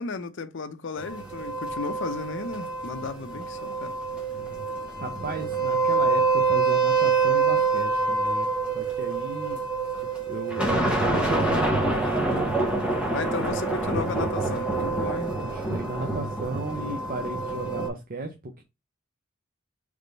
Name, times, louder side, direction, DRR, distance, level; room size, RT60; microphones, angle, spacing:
voice 1, 0.0-3.9 13.1-15.4, left 4 dB, 60° left, 0.6 m, -34 dB
sound 1, 1.0-17.9, right 3 dB, 5° right, 1.2 m, -26 dB
voice 2, 5.0-8.5 8.7-9.7 10.3-12.5 13.6-13.7 15.4-18.6, right 2 dB, 45° right, 0.6 m, -35 dB
3.5 x 3.3 x 3.9 m
head